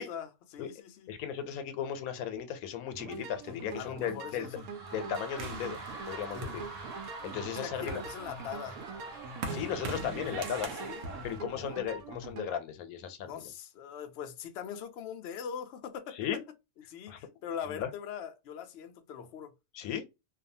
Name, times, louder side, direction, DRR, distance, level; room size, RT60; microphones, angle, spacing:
voice 1, 0.0-1.2 3.8-4.6 6.2-6.7 7.5-8.8 10.8-11.1 11.5-11.8 13.2-16.4 16.9-19.5, left 8 dB, 65° left, 0.7 m, -42 dB
voice 2, 1.1-4.5 4.9-5.8 6.1-6.6 7.2-8.0 9.5-10.7 11.2-13.3 16.2-16.4 17.1-17.2 17.7-17.9 19.7-20.1, left 9 dB, 85° left, 1.0 m, -36 dB
sound 1, 2.9-12.5, right 4 dB, 90° right, 1.1 m, -44 dB
sound 2, 3.1-11.4, right 3 dB, 50° right, 0.5 m, -46 dB
sound 3, 5.4-7.2 7.7-12.3, right 3 dB, 65° right, 1.0 m, -42 dB
2.6 x 2.3 x 2.6 m
omnidirectional pair, 1.5 m